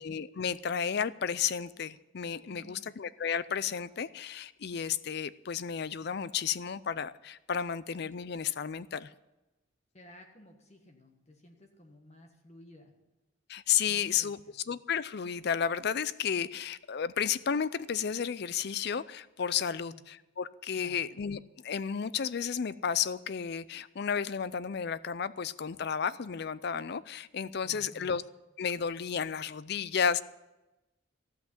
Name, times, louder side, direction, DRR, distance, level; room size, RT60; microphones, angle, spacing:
voice 1, 0.0-9.1 13.5-14.4 14.7-28.2 28.6-30.2, left 7 dB, 55° left, 17 dB, 0.4 m, -32 dB
voice 2, 2.5-2.9 9.9-12.9 13.9-14.6 19.8-20.0 20.8-21.1 27.6-28.2, left 1 dB, 35° left, 3 dB, 1.5 m, -54 dB
15.0 x 5.9 x 9.7 m, 1.0 s
head